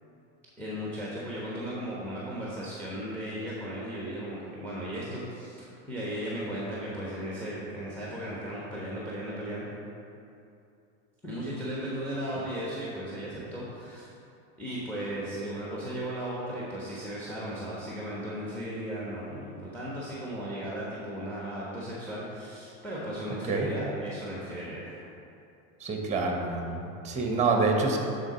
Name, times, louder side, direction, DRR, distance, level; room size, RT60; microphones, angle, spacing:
voice 1, 0.6-9.6 11.2-14.1 14.6-25.0, equal, 5° left, -6 dB, 1.4 m, -36 dB
voice 2, 25.8-28.0, right 3 dB, 15° right, 2 dB, 1.1 m, -27 dB
10.5 x 3.9 x 4.4 m, 2.7 s
hypercardioid pair, 100°, 43 cm